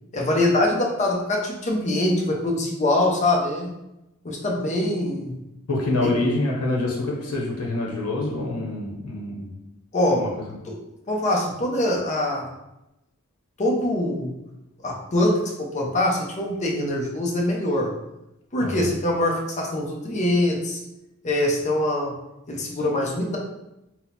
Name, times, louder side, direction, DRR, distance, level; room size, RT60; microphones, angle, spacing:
voice 1, 0.1-3.8 4.2-5.3 6.0-6.1 9.9-10.2 10.7-10.8 11.1-12.5 13.6-14.3 14.8-17.9 18.5-20.8 21.2-22.2 22.5-23.4, left 1 dB, 35° left, 0 dB, 0.6 m, -23 dB
voice 2, 5.7-9.5 10.1-10.6 18.6-18.9, left 2 dB, 85° left, -2 dB, 0.8 m, -26 dB
2.8 x 2.1 x 4.0 m, 0.92 s
head